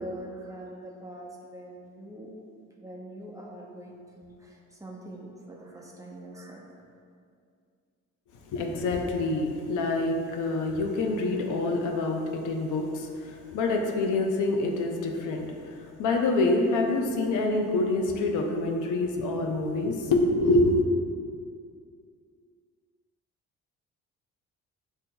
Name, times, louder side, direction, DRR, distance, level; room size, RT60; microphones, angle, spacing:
voice 1, 0.0-2.3 2.8-6.7, right 1 dB, 10° right, -3 dB, 0.7 m, -43 dB
voice 2, 8.5-20.8, left 2 dB, 80° left, 2 dB, 0.6 m, -26 dB
7.9 x 2.7 x 2.2 m, 2.2 s
cardioid pair, 90°, 30 cm